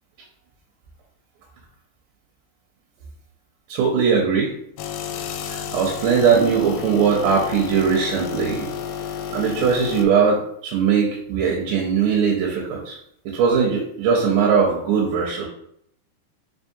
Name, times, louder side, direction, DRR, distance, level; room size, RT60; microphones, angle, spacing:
voice 1, 3.7-4.5 5.4-8.7 9.3-13.0 13.3-15.5, right 6 dB, 75° right, -1 dB, 2.0 m, -20 dB
sound 1, 4.8-10.1, left 8 dB, 85° left, 2.3 m, -31 dB
5.4 x 3.0 x 2.7 m, 0.70 s
omnidirectional pair, 4.2 m